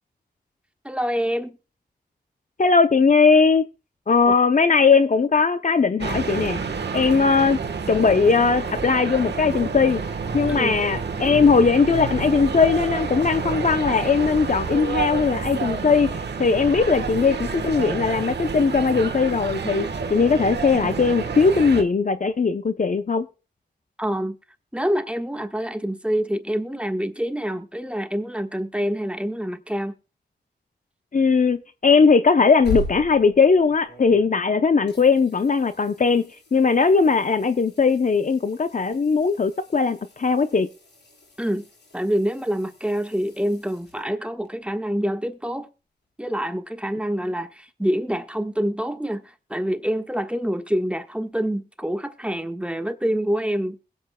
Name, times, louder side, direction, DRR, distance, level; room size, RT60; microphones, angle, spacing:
voice 1, 0.8-1.6 4.3-4.4 10.5-10.8 24.0-24.4 24.7-29.9 41.4-41.7 41.9-45.7 46.2-53.8, equal, 5° right, 1.3 m, -26 dB
voice 2, 2.6-3.6 4.1-6.6 6.9-7.6 7.9-10.0 10.3-23.3 31.1-36.2 36.5-40.7, left 5 dB, 45° left, 0.7 m, -19 dB
sound 1, 6.0-21.8, right 5 dB, 75° right, 1.3 m, -29 dB
sound 2, 32.3-34.5 34.9-44.5 47.2-47.3, left 1 dB, 75° left, 5.7 m, -39 dB
21.5 x 8.0 x 2.2 m
cardioid pair, 50°, 18 cm